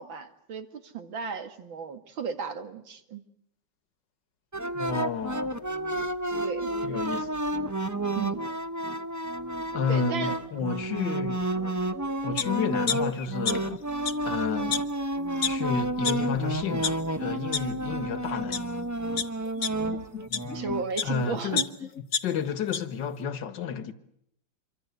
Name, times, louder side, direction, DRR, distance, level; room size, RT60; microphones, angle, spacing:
voice 1, 0.0-3.2 6.4-6.7 8.1-8.4 9.9-10.4 20.5-21.7, right 5 dB, 80° right, 2.9 m, -34 dB
sound 1, 4.5-20.8, right 1 dB, 15° right, 0.7 m, -31 dB
voice 2, 4.7-5.6 6.8-7.4 9.7-11.4 12.2-13.8 14.3-14.8 15.4-18.7 21.0-21.6 22.2-23.9, left 6 dB, 65° left, 2.2 m, -31 dB
sound 2, 12.4-12.5 12.9-13.8 14.0-14.1 14.7-14.8 15.4-15.5 16.0-16.1 16.6-16.9 17.5-17.6 18.3-18.6 19.2-21.1 21.6-22.8 23.2-23.3, left 6 dB, 50° left, 1.5 m, -29 dB
27.0 x 23.5 x 8.2 m
omnidirectional pair, 2.1 m